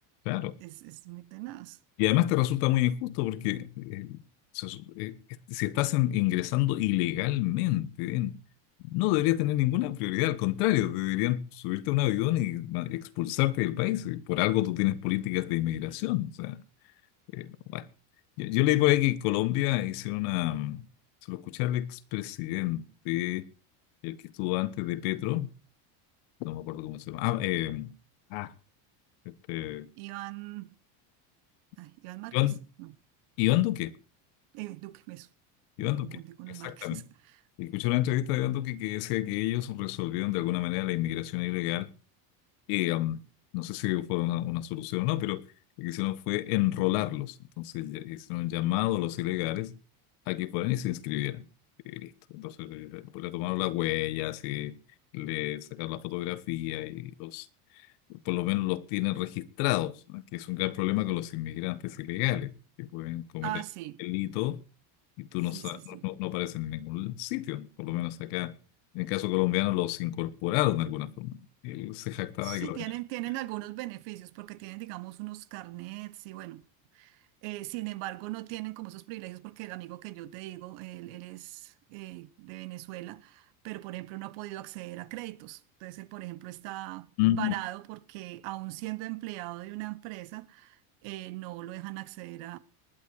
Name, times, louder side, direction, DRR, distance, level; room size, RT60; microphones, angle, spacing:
voice 1, 0.6-1.8 30.0-30.8 31.8-32.5 32.8-33.0 34.5-35.3 35.8-37.4 63.4-64.0 65.5-66.1 72.4-76.6 76.9-92.6, right 18 dB, 70° right, 1.3 m, -40 dB
voice 2, 2.0-4.2 4.5-5.2 5.5-8.4 8.8-16.6 17.3-17.9 18.4-20.8 21.3-23.5 24.0-25.5 26.4-27.9 28.3-28.5 29.2-29.9 32.3-32.6 33.4-33.9 35.8-36.2 36.5-37.0 37.6-41.9 42.7-43.2 43.5-45.4 45.8-49.7 50.3-51.4 51.8-54.7 55.1-57.5 58.1-62.5 62.8-63.5 64.0-64.6 65.2-68.5 68.9-72.8 87.2-87.5, left 16 dB, 70° left, 1.3 m, -29 dB
19.5 x 11.0 x 4.7 m
cardioid pair, 140°, 48 cm